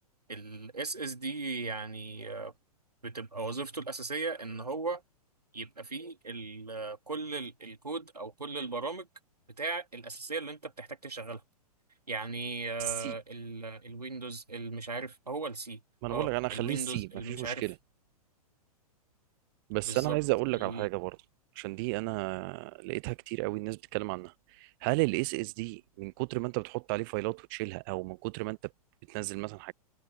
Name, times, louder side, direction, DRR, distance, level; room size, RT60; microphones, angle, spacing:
voice 1, 0.3-2.5 3.0-5.0 5.5-9.1 9.6-11.4 12.1-15.8 16.1-17.6 19.8-20.2 20.6-20.9, right 3 dB, 85° right, 2.5 m, -37 dB
voice 2, 12.8-13.2 16.0-17.7 19.7-21.2 21.6-28.6 29.1-29.7, right 27 dB, 35° right, 0.6 m, -33 dB
figure-of-eight pair, 105°, 20 cm